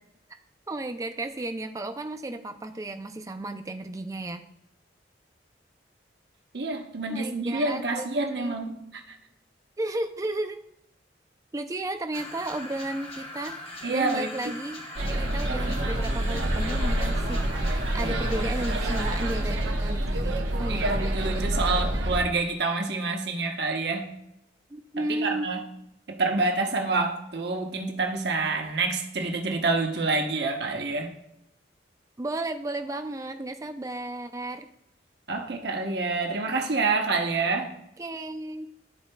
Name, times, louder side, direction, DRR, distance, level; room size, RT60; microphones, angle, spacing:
voice 1, 0.7-4.4 7.1-8.1 8.4-8.5 9.8-10.6 11.5-13.6 13.9-14.8 15.2-21.0 24.7-25.5 32.2-34.7 38.0-38.7, right 2 dB, 15° right, 7 dB, 0.4 m, -33 dB
voice 2, 6.5-8.8 13.8-14.3 20.7-24.1 25.2-25.6 26.1-31.1 35.3-37.7, right 3 dB, 60° right, 2 dB, 1.0 m, -27 dB
sound 1, 12.1-19.7, left 1 dB, 30° left, 0.9 m, -41 dB
sound 2, 15.0-22.2, right 1 dB, 85° right, 1.0 m, -27 dB
12.5 x 4.3 x 2.2 m, 0.83 s
head